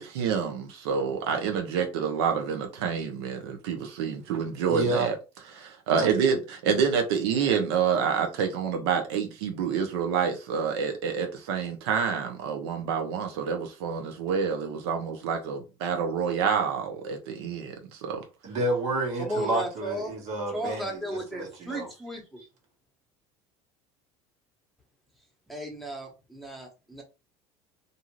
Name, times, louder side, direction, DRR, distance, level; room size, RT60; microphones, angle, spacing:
voice 1, 0.0-5.1 5.5-18.2, right 6 dB, 85° right, 0.6 m, -28 dB
voice 2, 4.7-5.1 6.0-6.1 18.4-21.0 21.3-21.9, right 2 dB, 60° right, 1.2 m, -29 dB
voice 3, 19.2-20.1 20.5-22.4 25.5-27.0, right 1 dB, ahead, 1.0 m, -35 dB
2.6 x 2.4 x 3.0 m
supercardioid pair, 100°, 13 cm